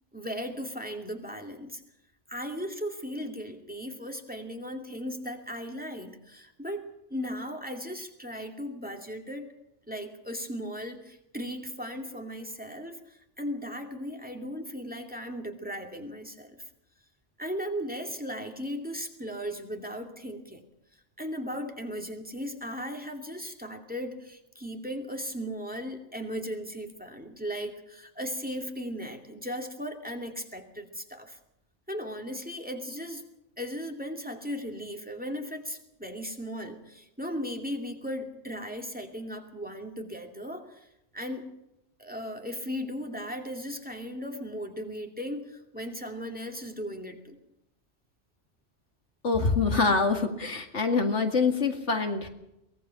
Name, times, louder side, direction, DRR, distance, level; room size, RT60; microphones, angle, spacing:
voice 1, 0.1-1.8 2.3-9.5 9.9-16.6 17.4-20.6 20.9-31.4 31.9-33.3 33.6-40.9 41.1-41.5 42.0-47.4, equal, 5° right, 3 dB, 2.5 m, -37 dB
voice 2, 49.2-52.3, left 4 dB, 75° left, 5 dB, 2.4 m, -25 dB
23.5 x 19.0 x 5.9 m, 0.86 s
omnidirectional pair, 1.2 m